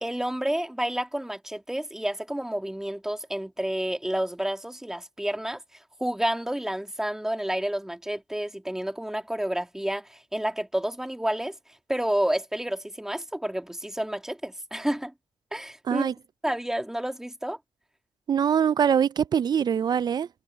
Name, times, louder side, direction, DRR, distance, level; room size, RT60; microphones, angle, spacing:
voice 1, 0.0-5.6 6.0-11.6 11.9-15.1 15.5-16.1 16.4-17.6, right 1 dB, 5° right, 2.1 m, -30 dB
voice 2, 18.3-20.3, right 8 dB, 45° right, 0.4 m, -23 dB
cardioid pair, 120°, 10 cm